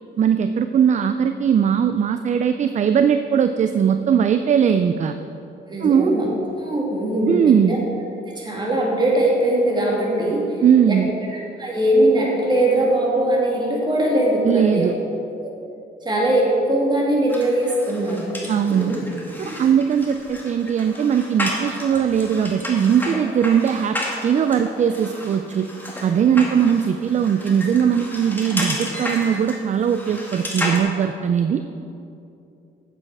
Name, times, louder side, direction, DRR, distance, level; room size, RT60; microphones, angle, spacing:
voice 1, 0.2-5.1 5.8-6.1 7.3-7.8 10.6-11.1 14.4-14.9 18.5-18.9 19.6-24.0 24.2-25.7 26.0-31.6, right 8 dB, 40° right, 9 dB, 0.4 m, -19 dB
voice 2, 5.7-6.3 6.6-7.8 8.4-10.4 10.9-11.0 11.3-14.9 15.4-15.5 16.0-18.2, right 1 dB, 20° right, -3 dB, 2.3 m, -20 dB
sound 1, 17.3-30.8, left 1 dB, 10° left, 1.6 m, -31 dB
8.7 x 7.5 x 4.8 m, 2.7 s
cardioid pair, 90°, 20 cm